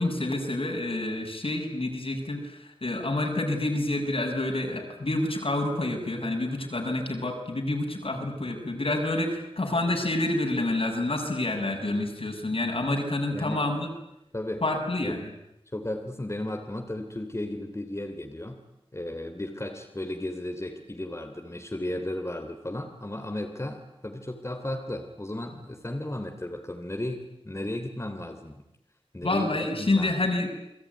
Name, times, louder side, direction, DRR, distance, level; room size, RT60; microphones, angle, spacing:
voice 1, 0.0-13.9 14.6-15.2 29.2-30.5, left 2 dB, 70° left, 2 dB, 6.6 m, -28 dB
voice 2, 15.7-18.6 18.9-28.6 29.1-30.1, left 1 dB, 30° left, 4 dB, 3.0 m, -34 dB
29.5 x 21.0 x 9.6 m, 0.86 s
wide cardioid pair, 60°, 10 cm